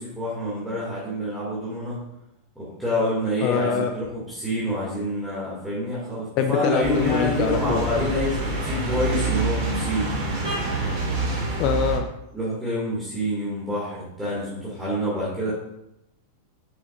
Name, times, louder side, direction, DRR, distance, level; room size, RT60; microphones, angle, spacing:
voice 1, 0.0-2.0 2.6-10.1 10.5-10.6 12.3-15.5, equal, 5° right, -9 dB, 2.2 m, -27 dB
voice 2, 3.4-3.9 6.4-7.8 11.6-12.1, left 8 dB, 40° left, 6 dB, 0.5 m, -24 dB
sound 1, 6.8-12.0, right 3 dB, 45° right, 2.1 m, -27 dB
6.4 x 6.2 x 2.5 m, 0.85 s
figure-of-eight pair, 90°, 0 cm